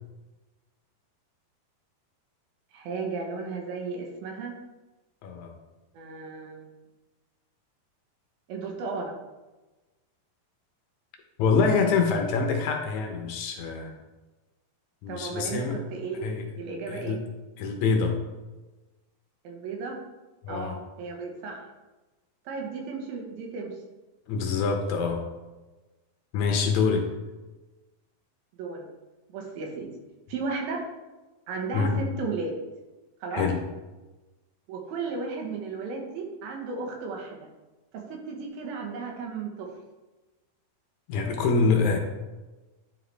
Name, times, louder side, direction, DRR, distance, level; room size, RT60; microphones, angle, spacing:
voice 1, 2.7-4.5 5.9-6.8 8.5-9.1 15.1-17.2 19.4-20.0 20.5-21.7 22.5-23.7 28.6-28.9 29.3-29.9 30.3-30.8 31.5-32.5 33.2-33.5 34.7-37.5 37.9-39.7, right 4 dB, 80° right, 1 dB, 2.9 m, -34 dB
voice 2, 11.4-14.0 15.0-15.8 16.2-16.5 16.9-17.2 17.6-18.2 20.4-20.8 24.3-25.3 26.3-27.1 31.7-32.0 33.3-33.6 41.1-42.0, left 5 dB, 75° left, 3 dB, 1.8 m, -25 dB
10.0 x 4.7 x 3.3 m, 1.1 s
omnidirectional pair, 4.3 m